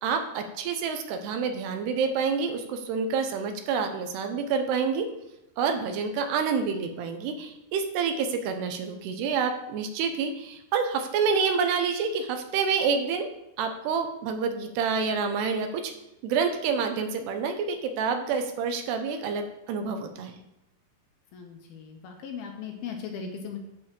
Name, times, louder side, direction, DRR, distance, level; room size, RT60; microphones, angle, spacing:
voice 1, 0.0-5.1 5.6-13.3 13.6-15.9 16.2-20.3, right 5 dB, 80° right, 6 dB, 2.9 m, -28 dB
voice 2, 21.3-23.6, left 6 dB, 70° left, 3 dB, 2.5 m, -38 dB
8.9 x 4.7 x 7.4 m, 0.91 s
omnidirectional pair, 4.9 m